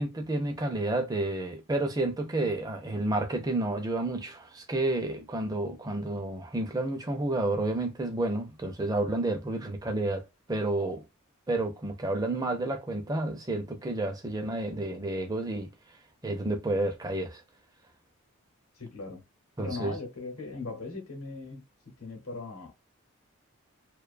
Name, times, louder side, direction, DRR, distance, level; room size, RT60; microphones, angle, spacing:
voice 1, 0.0-10.2 10.5-11.1 11.5-15.7 16.2-17.4 19.6-19.9, right 2 dB, 15° right, 0.4 m, -30 dB
voice 2, 18.8-19.2 19.6-21.6 22.0-22.7, left 3 dB, 80° left, 0.9 m, -39 dB
2.5 x 2.2 x 2.4 m
head